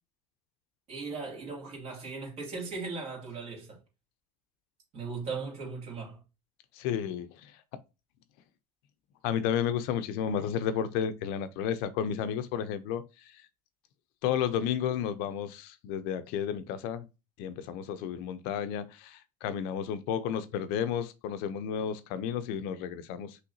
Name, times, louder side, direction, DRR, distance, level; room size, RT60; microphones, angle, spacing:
voice 1, 0.9-3.8 4.9-6.2, right 4 dB, 40° right, 2.4 m, -38 dB
voice 2, 6.7-7.5 9.2-13.0 13.3-13.4 14.2-17.1 17.4-23.4, left 8 dB, 65° left, 0.5 m, -32 dB
5.7 x 3.2 x 2.7 m
cardioid pair, 155°, 17 cm